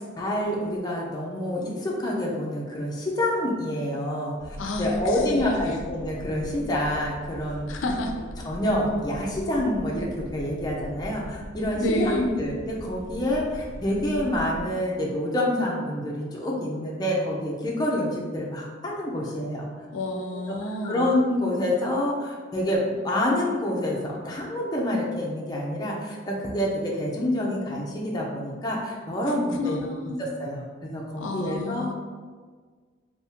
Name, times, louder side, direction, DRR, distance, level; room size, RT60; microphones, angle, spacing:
voice 1, 0.2-7.8 8.5-19.7 20.3-20.6 20.8-31.9, left 1 dB, 20° left, -3 dB, 0.5 m, -27 dB
sound 1, 4.4-14.7, equal, 60° right, 1.3 m, -41 dB
voice 2, 4.6-5.7 7.7-8.2 11.7-12.4 19.9-21.1 29.2-30.2 31.2-31.9, left 2 dB, 85° left, 3 dB, 0.4 m, -30 dB
3.4 x 2.7 x 2.8 m, 1.5 s
head